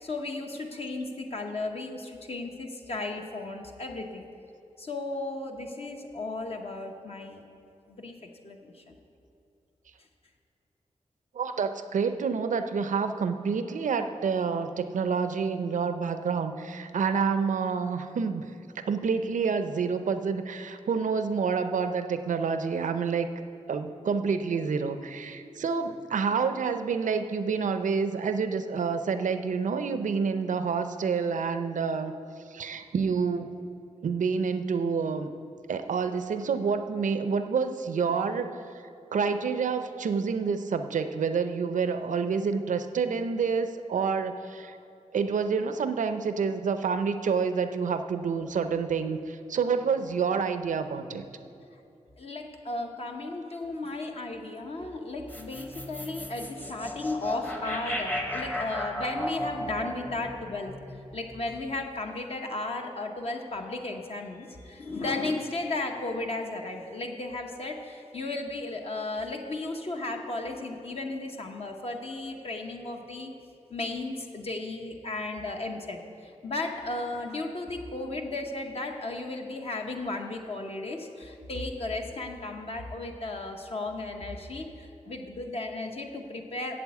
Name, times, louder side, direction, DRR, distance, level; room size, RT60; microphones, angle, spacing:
voice 1, 0.0-4.3 4.8-7.4 7.9-8.9 52.2-73.3 73.7-86.7, left 2 dB, 50° left, 2 dB, 0.9 m, -35 dB
voice 2, 11.3-18.5 18.8-23.3 23.7-32.1 32.5-33.5 34.0-35.3 35.7-38.6 39.1-44.8 45.1-51.2, right 5 dB, 80° right, 9 dB, 0.6 m, -28 dB
sound 1, 55.3-61.6, left 1 dB, 15° left, 0.8 m, -35 dB
8.4 x 7.6 x 8.3 m, 2.7 s
wide cardioid pair, 145°, 13 cm